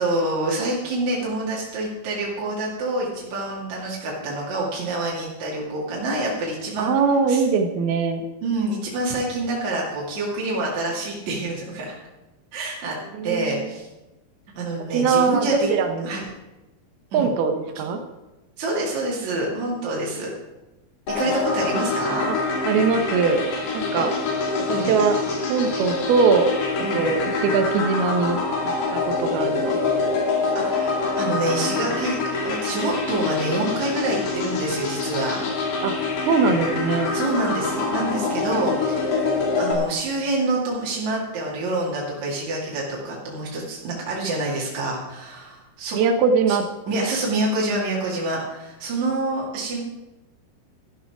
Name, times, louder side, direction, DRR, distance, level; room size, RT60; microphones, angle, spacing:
voice 1, 0.0-6.9 7.3-7.4 8.4-12.0 12.5-12.9 13.2-13.9 14.6-15.7 16.0-16.3 17.1-17.3 18.6-20.3 21.1-22.3 24.0-24.1 24.7-24.9 26.8-27.1 30.6-32.2 32.4-35.4 37.1-39.2 39.6-46.0 46.5-46.6 46.9-49.8, right 2 dB, 50° right, -4 dB, 3.5 m, -27 dB
voice 2, 6.8-8.2 13.2-13.6 14.9-16.1 17.1-18.0 22.3-22.4 22.7-23.4 23.7-24.1 24.7-25.2 25.5-26.5 26.9-29.8 35.8-35.9 36.2-37.2 45.9-46.6, right 5 dB, 90° right, 5 dB, 3.1 m, -21 dB
sound 1, 21.1-39.7, left 4 dB, 65° left, 3.9 m, -25 dB
13.0 x 12.5 x 4.8 m, 1.0 s
omnidirectional pair, 4.3 m